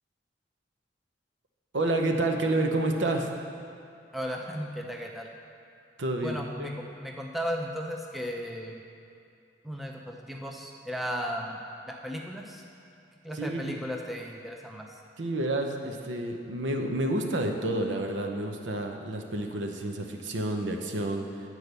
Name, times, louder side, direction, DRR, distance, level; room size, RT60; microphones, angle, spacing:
voice 1, 1.7-3.3 6.0-6.7 13.4-13.8 15.2-21.3, right 2 dB, 85° right, 3 dB, 0.8 m, -29 dB
voice 2, 4.1-5.3 6.2-8.8 9.6-11.6 11.8-12.6 13.2-15.0, equal, ahead, 0 dB, 0.5 m, -35 dB
9.7 x 4.6 x 6.7 m, 2.5 s
head